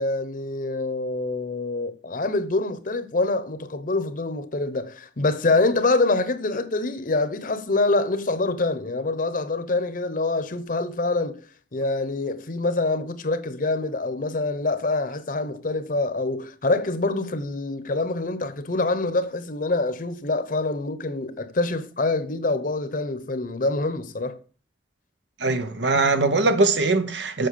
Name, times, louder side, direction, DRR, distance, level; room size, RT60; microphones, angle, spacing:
voice 1, 0.0-11.4 11.7-24.4, left 2 dB, 50° left, 0.9 m, -25 dB
voice 2, 25.4-27.5, right 3 dB, 85° right, 1.1 m, -21 dB
7.8 x 6.1 x 6.7 m
head